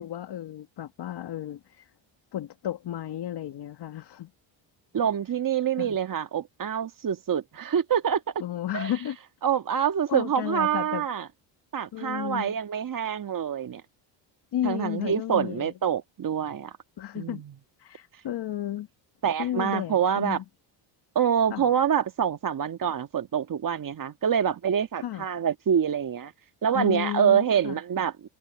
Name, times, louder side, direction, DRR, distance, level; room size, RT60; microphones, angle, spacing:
voice 1, 0.0-1.9 2.3-4.3 5.8-6.0 8.4-9.2 9.7-11.0 11.9-12.6 14.5-15.7 17.0-17.4 17.8-18.9 19.4-20.4 21.5-21.7 25.0-25.3 26.7-27.8, left 12 dB, 55° left, 1.7 m, -33 dB
voice 2, 4.9-8.2 8.7-8.9 9.4-11.3 11.7-13.8 14.6-16.7 17.1-17.5 19.2-20.4 21.1-26.3 26.6-28.3, right 8 dB, 45° right, 1.7 m, -26 dB
supercardioid pair, 75°, 47 cm